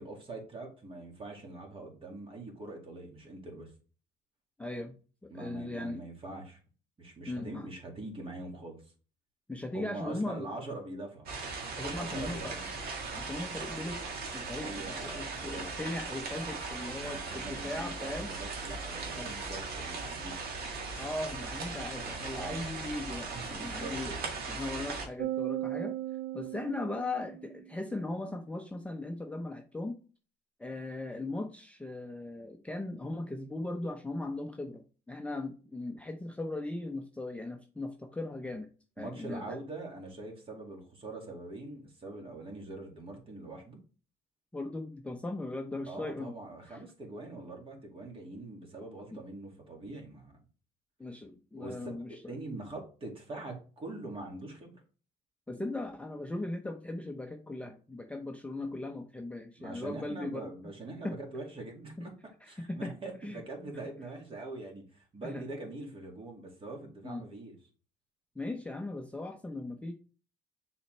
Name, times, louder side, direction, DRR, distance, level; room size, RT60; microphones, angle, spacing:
voice 1, 0.0-3.7 5.3-6.6 7.0-8.8 9.7-11.3 11.8-12.7 14.6-15.7 16.9-20.4 22.3-22.7 23.3-24.3 39.0-43.8 45.9-50.4 51.5-54.8 59.6-62.1 62.5-67.6, right 2 dB, 35° right, 1 dB, 2.3 m, -43 dB
voice 2, 4.6-5.0 5.2-6.0 7.3-7.7 9.5-10.5 11.8-12.5 13.1-14.0 14.3-18.3 19.2-19.3 21.0-24.1 24.5-26.0 26.3-30.0 30.6-38.7 39.0-39.6 44.5-46.3 46.7-46.8 49.1-49.2 51.0-52.3 55.5-60.5 61.0-61.2 62.0-62.1 62.4-62.9 63.2-63.4 65.2-65.4 67.0-67.3 68.4-69.9, left 2 dB, 5° left, 3 dB, 0.6 m, -38 dB
sound 1, 11.3-25.1, right 4 dB, 65° right, 1.8 m, -38 dB
sound 2, 25.2-27.7, right 14 dB, 85° right, 0.5 m, -37 dB
6.8 x 4.2 x 3.3 m, 0.37 s
cardioid pair, 110°, 17 cm